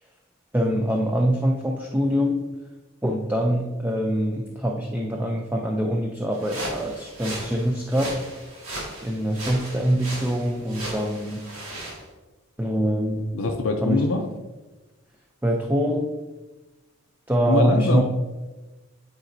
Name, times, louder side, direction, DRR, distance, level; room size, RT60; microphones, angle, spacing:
voice 1, 0.5-2.4 3.0-8.1 9.0-11.5 12.6-13.3 13.8-14.0 15.4-16.1 17.3-18.0, equal, 10° right, 1 dB, 0.4 m, -24 dB
sound 1, 6.3-12.0, right 1 dB, 85° right, 1.9 m, -36 dB
voice 2, 13.3-14.3 17.5-18.0, left 3 dB, 75° left, 3 dB, 0.6 m, -23 dB
9.0 x 4.0 x 2.6 m, 1.2 s
head